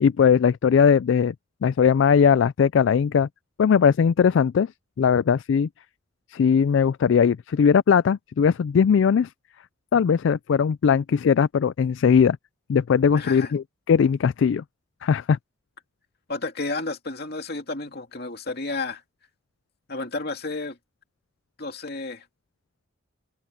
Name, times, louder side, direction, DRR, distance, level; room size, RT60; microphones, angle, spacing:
voice 1, 0.0-1.3 1.6-3.3 3.6-4.7 5.0-5.7 6.3-9.3 9.9-12.4 12.7-14.6 15.0-15.4, left 6 dB, 70° left, 0.3 m, -19 dB
voice 2, 13.1-13.5 16.3-19.0 19.9-20.8 21.6-22.2, left 3 dB, 50° left, 2.5 m, -31 dB
head